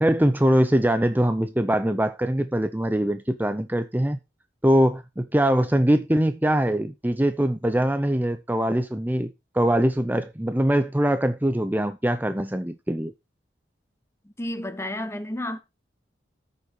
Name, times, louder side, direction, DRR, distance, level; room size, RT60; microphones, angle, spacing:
voice 1, 0.0-4.2 4.6-13.1, right 1 dB, 10° right, 0.7 m, -22 dB
voice 2, 14.2-15.6, left 1 dB, 15° left, 1.1 m, -31 dB
14.0 x 6.8 x 4.7 m
head